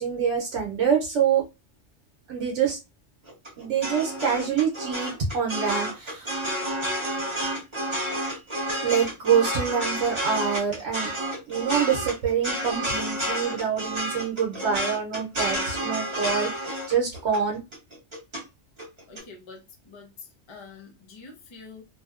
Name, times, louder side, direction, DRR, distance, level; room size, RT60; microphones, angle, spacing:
voice 1, 0.0-1.4 2.3-2.8 3.6-6.4 8.8-11.1 11.5-16.6 16.9-17.6, right 7 dB, 80° right, 1.0 m, -26 dB
sound 1, 3.3-18.4 18.8-19.2, right 1 dB, 25° right, 1.0 m, -30 dB
voice 2, 19.1-21.8, left 4 dB, 35° left, 0.5 m, -46 dB
2.7 x 2.0 x 2.3 m
omnidirectional pair, 1.2 m